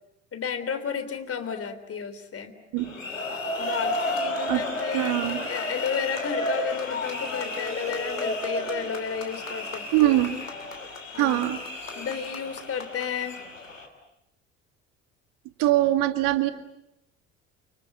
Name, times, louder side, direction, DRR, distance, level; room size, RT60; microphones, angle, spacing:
voice 1, 0.3-2.6 3.6-5.2 5.5-10.2 11.1-11.4 11.9-13.4, left 6 dB, 35° left, 10 dB, 3.6 m, -32 dB
sound 1, 2.8-13.9, left 1 dB, 90° left, 3.1 m, -32 dB
voice 2, 4.9-5.4 9.9-10.4 11.2-11.6 15.6-16.5, right 15 dB, 60° right, 9 dB, 2.2 m, -22 dB
30.0 x 25.5 x 7.5 m, 0.84 s
figure-of-eight pair, 60°, 38 cm